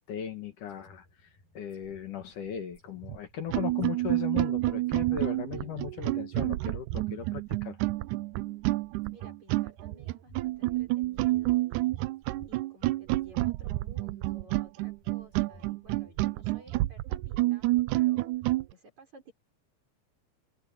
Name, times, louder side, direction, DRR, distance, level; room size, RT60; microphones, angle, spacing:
voice 1, 0.0-7.8, left 8 dB, 65° left, 3.1 m, -37 dB
sound 1, 0.7-16.8, left 2 dB, 80° left, 9.9 m, -60 dB
sound 2, 3.0-3.2 3.5-18.7, right 18 dB, 80° right, 1.8 m, -29 dB
voice 2, 9.1-11.9 12.4-18.3 18.7-19.3, right 2 dB, 50° right, 7.0 m, -55 dB
omnidirectional pair, 4.2 m